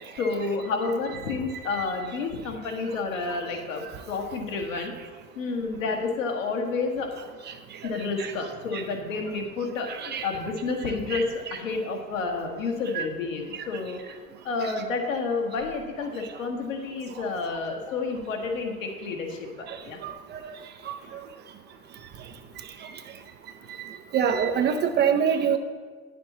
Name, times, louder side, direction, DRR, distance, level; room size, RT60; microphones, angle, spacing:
voice 1, 0.2-4.9 5.3-7.1 7.8-14.0 14.4-20.0 21.0-21.1, left 4 dB, 65° left, 1 dB, 1.5 m, -30 dB
voice 2, 9.9-10.3 11.1-11.2 12.9-13.1 13.5-13.6 14.6-14.7 19.7-19.8 20.0-20.6 20.8-21.0 22.8-22.9 23.8-25.6, right 7 dB, 25° right, 7 dB, 0.5 m, -26 dB
9.8 x 6.8 x 4.1 m, 1.5 s
figure-of-eight pair, 80°, 42 cm